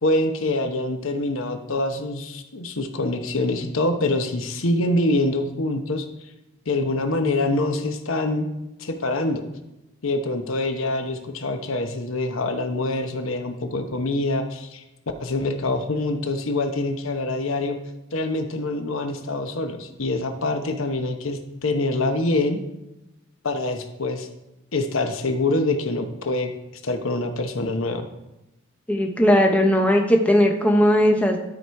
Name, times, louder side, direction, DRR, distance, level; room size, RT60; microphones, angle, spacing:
voice 1, 0.0-6.1 6.7-8.5 8.8-9.4 10.0-14.8 15.2-17.8 18.1-22.6 23.4-24.3 24.7-26.5 26.8-28.1, left 2 dB, 80° left, 6 dB, 0.9 m, -25 dB
voice 2, 28.9-31.4, equal, 5° left, 2 dB, 0.8 m, -18 dB
12.0 x 4.9 x 4.6 m, 0.93 s
head